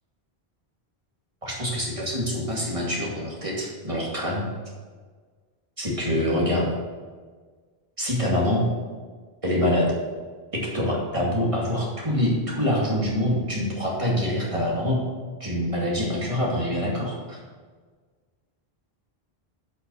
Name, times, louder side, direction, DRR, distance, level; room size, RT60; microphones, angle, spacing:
voice 1, 1.4-4.5 5.8-6.7 8.0-8.6 9.4-9.9 10.5-15.0 15.4-17.4, left 1 dB, 30° right, -4 dB, 2.3 m, -25 dB
8.1 x 5.7 x 6.2 m, 1.5 s
omnidirectional pair, 1.1 m